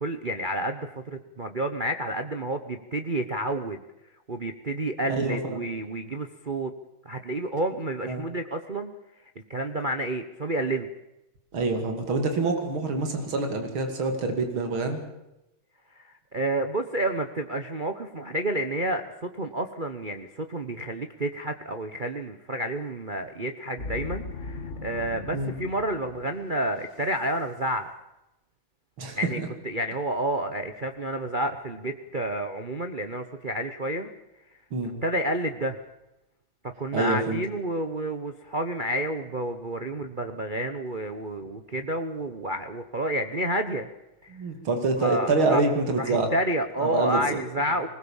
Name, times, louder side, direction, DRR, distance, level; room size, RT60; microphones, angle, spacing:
voice 1, 0.0-3.8 4.3-6.7 7.0-8.9 9.5-10.9 15.9-27.9 29.1-29.4 29.6-34.1 35.0-35.8 36.8-43.9 44.2-44.4 45.0-45.6 46.0-47.9, right 1 dB, 35° right, 6 dB, 0.8 m, -30 dB
voice 2, 5.1-5.7 8.1-8.2 11.5-15.0 25.3-25.5 29.0-29.5 34.7-35.0 36.9-37.4 44.3-46.3 46.8-47.4, right 3 dB, 70° right, 5 dB, 3.4 m, -26 dB
sound 1, 23.8-27.0, left 3 dB, 40° left, 1.6 m, -39 dB
20.5 x 20.0 x 7.2 m, 0.92 s
omnidirectional pair, 2.3 m